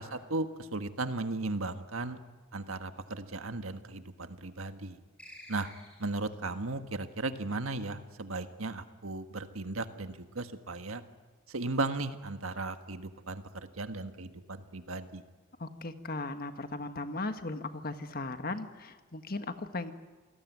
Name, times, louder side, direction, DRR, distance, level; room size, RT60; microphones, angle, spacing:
voice 1, 0.0-2.2 2.5-5.0 5.5-5.7 6.0-11.0 11.5-15.2, right 2 dB, 80° right, 8 dB, 1.6 m, -36 dB
sound 1, 5.2-6.4, equal, 5° left, 6.9 m, -51 dB
voice 2, 15.6-19.9, left 2 dB, 45° left, 8 dB, 1.5 m, -37 dB
27.5 x 19.0 x 9.5 m, 1.3 s
head